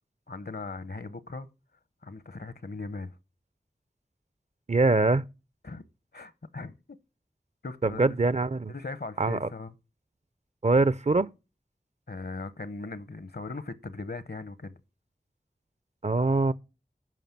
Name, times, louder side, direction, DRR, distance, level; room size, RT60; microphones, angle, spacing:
voice 1, 0.3-1.5 2.0-3.2 5.6-5.8 6.1-6.7 7.6-8.2 8.7-9.7 12.1-14.7, left 3 dB, 65° left, 0.8 m, -39 dB
voice 2, 4.7-5.3 7.8-8.7 9.2-9.5 10.6-11.3 16.0-16.5, right 3 dB, 40° right, 0.4 m, -23 dB
9.3 x 5.6 x 5.9 m
wide cardioid pair, 45°, 17 cm